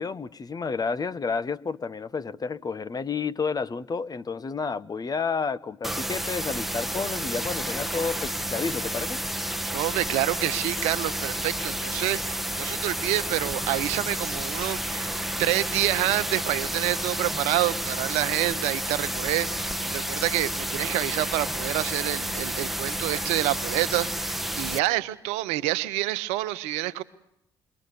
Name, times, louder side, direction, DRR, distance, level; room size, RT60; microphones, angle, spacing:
voice 1, 0.0-9.2, left 5 dB, 35° left, 1.2 m, -30 dB
sound 1, 5.8-24.8, right 1 dB, ahead, 1.3 m, -30 dB
voice 2, 9.7-27.0, right 16 dB, 75° right, 1.0 m, -28 dB
28.0 x 22.5 x 7.0 m
hypercardioid pair, 50°, 11 cm